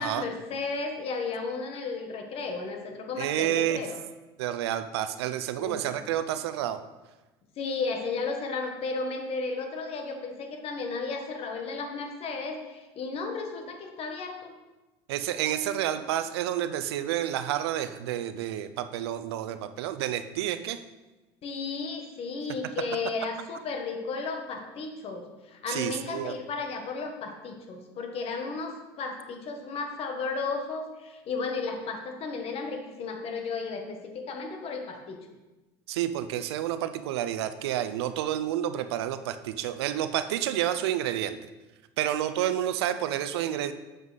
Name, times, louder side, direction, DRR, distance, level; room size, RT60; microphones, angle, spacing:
voice 1, 0.0-4.0 5.6-5.8 7.6-14.5 21.4-35.2, left 4 dB, 50° left, 4 dB, 1.5 m, -34 dB
voice 2, 3.2-3.8 4.4-6.8 15.1-20.8 25.7-26.3 35.9-41.4 42.0-43.7, right 11 dB, 85° right, 11 dB, 0.6 m, -29 dB
7.8 x 7.3 x 4.0 m, 1.1 s
supercardioid pair, 95°, 13 cm